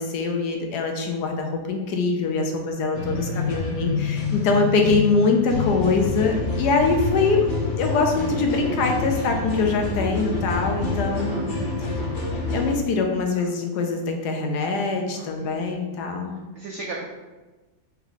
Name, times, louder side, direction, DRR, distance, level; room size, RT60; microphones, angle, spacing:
voice 1, 0.0-7.5 7.8-11.5 12.5-16.3, left 4 dB, 75° left, 3 dB, 1.1 m, -23 dB
sound 1, 2.9-12.8, left 3 dB, 50° left, 0.6 m, -27 dB
voice 2, 2.9-3.9 10.9-11.6 13.3-13.5 15.1-16.0 16.5-17.0, right 3 dB, 80° right, -1 dB, 0.6 m, -39 dB
4.5 x 3.0 x 3.9 m, 1.2 s
omnidirectional pair, 1.9 m